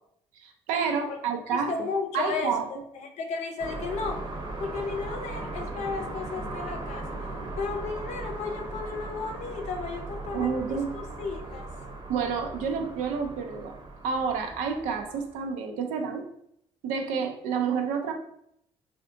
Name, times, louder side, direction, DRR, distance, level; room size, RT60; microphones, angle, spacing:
voice 1, 0.4-1.9 2.1-2.7 10.3-10.9 12.1-13.7 14.0-16.2 16.8-18.1, right 6 dB, 85° right, 4 dB, 0.5 m, -29 dB
voice 2, 1.5-4.2 4.6-7.1 7.6-11.7, left 4 dB, 65° left, 4 dB, 0.6 m, -34 dB
sound 1, 3.6-15.4, right 2 dB, 40° right, 0.8 m, -38 dB
3.3 x 2.5 x 2.6 m, 0.72 s
supercardioid pair, 65°, 13 cm